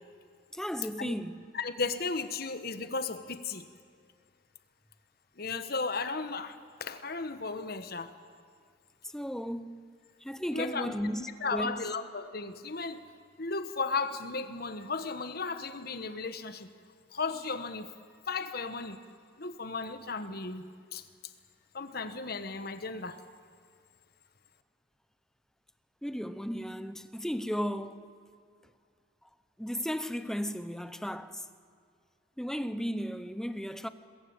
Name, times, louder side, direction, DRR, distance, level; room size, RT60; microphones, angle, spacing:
voice 1, 0.5-1.4 9.1-9.9 10.2-11.8 26.0-28.0 29.6-31.4 32.4-33.9, equal, 5° left, 0.7 m, -35 dB
voice 2, 1.5-3.7 5.4-8.1 10.5-10.9 11.4-13.1 13.4-16.7 17.1-17.9 18.3-19.0 19.4-21.0 21.7-23.2, left 4 dB, 50° left, 1.2 m, -35 dB
22.0 x 21.5 x 8.8 m
head